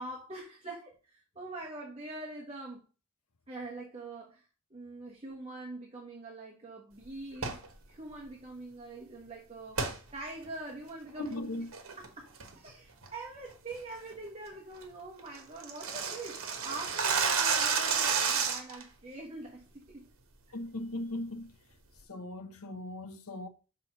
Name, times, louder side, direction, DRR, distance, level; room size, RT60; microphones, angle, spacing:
voice 1, 0.0-2.8 3.5-7.6 7.9-11.4 12.0-20.1 20.5-20.6, right 2 dB, 30° right, 1.3 m, -44 dB
sound 1, 7.3-7.7 9.8-10.0 10.4-10.5 11.1-11.3 11.7-12.1 12.4-12.7 13.0-13.1 13.5-13.8 14.1-14.2 14.5-14.6 14.8-14.9 15.2-18.8, right 6 dB, 70° right, 1.3 m, -30 dB
voice 2, 11.2-11.7 20.5-21.5 22.1-23.5, left 1 dB, 90° left, 0.9 m, -38 dB
6.1 x 3.6 x 5.8 m
head